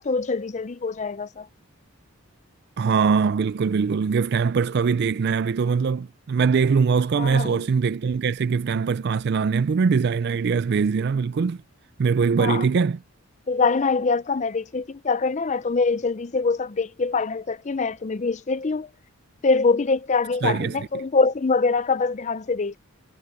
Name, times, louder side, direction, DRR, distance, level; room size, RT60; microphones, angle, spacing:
voice 1, 0.0-1.5 7.2-7.6 12.4-12.7 13.5-18.9 19.4-22.8, left 4 dB, 35° left, 0.5 m, -24 dB
voice 2, 2.8-11.6 12.0-13.0 20.4-20.8, right 5 dB, 50° right, 0.3 m, -22 dB
head